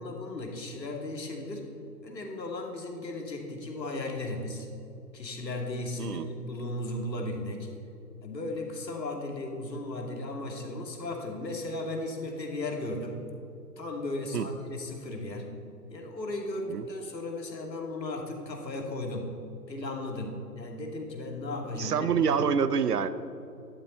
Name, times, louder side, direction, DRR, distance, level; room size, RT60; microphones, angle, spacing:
voice 1, 0.0-1.7 2.0-4.7 5.1-7.7 8.2-13.2 13.8-15.5 15.9-19.3 19.7-22.4, left 2 dB, 80° left, 1 dB, 2.7 m, -36 dB
voice 2, 21.8-23.1, right 6 dB, 65° right, 13 dB, 0.8 m, -26 dB
12.5 x 12.0 x 4.4 m, 2.7 s
hypercardioid pair, 145°, 50 cm